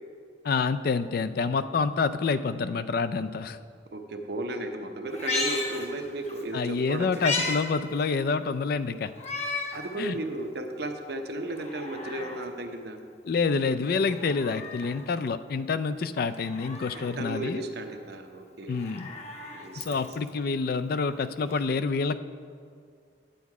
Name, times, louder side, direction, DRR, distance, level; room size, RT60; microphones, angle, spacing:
voice 1, 0.4-3.6 6.5-9.1 10.0-10.1 13.2-17.6 18.7-19.1 19.8-22.2, left 4 dB, 55° left, 12 dB, 0.4 m, -27 dB
voice 2, 3.9-7.2 9.7-13.0 17.0-18.8 19.5-20.1, right 1 dB, 65° right, 5 dB, 0.8 m, -34 dB
Meow, 5.1-6.4 6.8-7.6 8.0-8.1 9.2-9.8 10.4-10.5 11.4-12.4 14.0-15.0 16.3-17.1 18.6-20.3 21.5-21.6, left 3 dB, 40° left, 0.9 m, -34 dB
9.3 x 8.2 x 4.8 m, 2.2 s
head